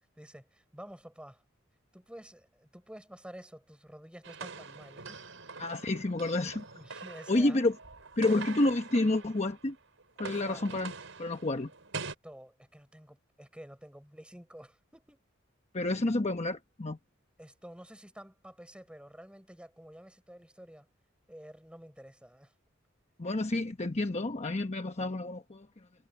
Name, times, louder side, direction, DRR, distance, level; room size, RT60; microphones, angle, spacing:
voice 1, 0.2-1.4 1.9-5.2 6.5-7.6 8.2-8.4 10.2-10.7 12.2-15.2 17.4-20.9 21.3-22.5, equal, 5° right, 5.9 m, -50 dB
sound 1, 4.2-9.7 10.0-12.1, right 4 dB, 70° right, 7.0 m, -44 dB
voice 2, 5.6-6.6 7.3-7.7 8.2-9.8 10.2-10.9 11.2-11.7 15.7-17.0 23.2-25.7, left 2 dB, 35° left, 1.0 m, -29 dB
head